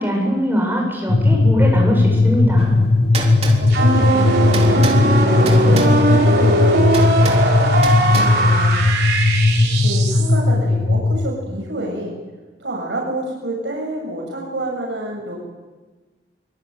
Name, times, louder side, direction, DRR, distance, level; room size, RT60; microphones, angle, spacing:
voice 1, 0.0-2.7, equal, 10° right, 0 dB, 7.4 m, -21 dB
sound 1, 1.1-11.3, left 2 dB, 50° left, 1.5 m, -16 dB
sound 2, 2.6-10.0, right 3 dB, 35° right, 3.7 m, -32 dB
voice 2, 3.6-4.3 5.1-8.8 9.6-12.2 12.6-15.3, right 1 dB, 85° right, -2 dB, 7.7 m, -28 dB
sound 3, 3.7-10.4, right 2 dB, 65° right, 6.1 m, -19 dB
25.0 x 24.5 x 9.5 m, 1.2 s
head